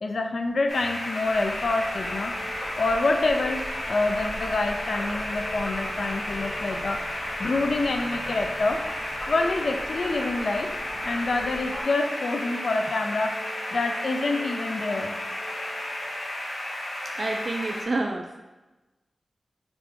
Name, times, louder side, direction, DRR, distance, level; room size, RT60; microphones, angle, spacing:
voice 1, 0.0-2.3 2.8-7.0 7.4-8.8 9.3-13.4 13.7-15.2, left 3 dB, 65° left, 4 dB, 0.4 m, -27 dB
sound 1, 0.7-17.8, left 1 dB, 90° left, 1.0 m, -33 dB
Frog, 1.2-11.8, equal, 5° left, 0.7 m, -41 dB
sound 2, 2.0-16.2, equal, 40° left, 1.1 m, -44 dB
voice 2, 17.1-18.4, right 2 dB, 45° right, 3 dB, 0.3 m, -28 dB
3.6 x 3.5 x 3.7 m, 1.1 s
wide cardioid pair, 120°, 0 cm